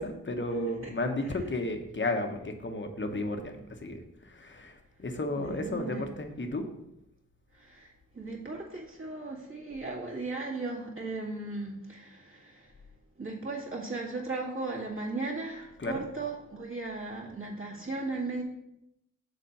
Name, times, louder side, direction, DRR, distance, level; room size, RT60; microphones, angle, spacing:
voice 1, 0.0-4.0 4.3-6.7 15.8-16.0, left 2 dB, 35° left, 5 dB, 1.0 m, -33 dB
voice 2, 5.4-6.1 7.5-12.7 13.2-18.4, right 3 dB, 40° right, -3 dB, 2.1 m, -37 dB
7.0 x 4.4 x 5.4 m, 0.85 s
wide cardioid pair, 85°, 32 cm